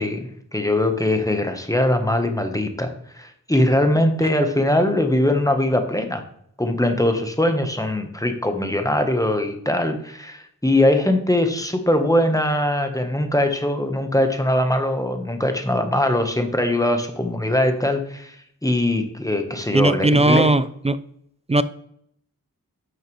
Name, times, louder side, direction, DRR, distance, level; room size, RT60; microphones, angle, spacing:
voice 1, 0.0-6.2 6.6-18.4 18.6-20.6, left 1 dB, 10° left, 6 dB, 1.1 m, -21 dB
voice 2, 19.7-21.0 21.5-21.6, right 2 dB, 20° right, 14 dB, 0.3 m, -18 dB
10.5 x 6.4 x 3.1 m, 0.69 s
wide cardioid pair, 80°, 34 cm